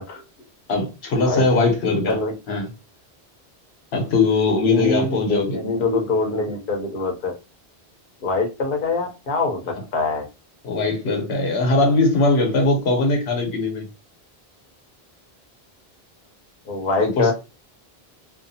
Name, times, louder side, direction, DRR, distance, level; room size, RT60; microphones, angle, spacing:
voice 1, 0.7-2.2 2.5-2.7 3.9-5.6 10.6-13.9 17.0-17.3, left 3 dB, 85° left, 1.0 m, -20 dB
voice 2, 4.6-7.3 8.2-10.2 16.7-17.3, left 3 dB, 60° left, 0.8 m, -24 dB
2.5 x 2.3 x 2.6 m
omnidirectional pair, 1.1 m